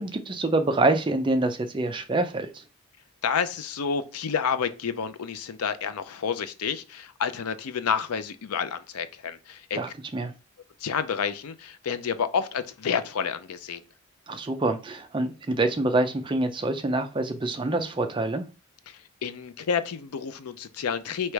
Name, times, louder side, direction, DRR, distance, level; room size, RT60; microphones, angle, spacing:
voice 1, 0.0-2.5 9.7-10.3 14.3-18.4, right 2 dB, 20° right, 0.4 m, -26 dB
voice 2, 3.2-9.8 10.8-13.8 18.9-21.3, left 6 dB, 85° left, 0.5 m, -29 dB
3.2 x 3.0 x 4.6 m
head